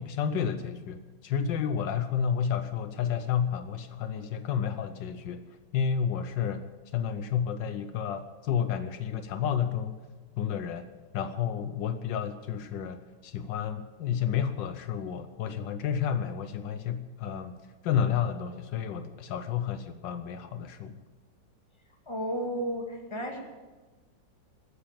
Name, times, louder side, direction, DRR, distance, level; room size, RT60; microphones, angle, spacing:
voice 1, 0.0-5.4 5.7-10.0 10.4-10.9 11.1-17.6 17.8-21.0, left 8 dB, 80° left, 11 dB, 1.4 m, -31 dB
voice 2, 22.1-23.4, equal, 15° left, 2 dB, 2.1 m, -33 dB
13.0 x 10.0 x 8.8 m, 1.3 s
omnidirectional pair, 2.0 m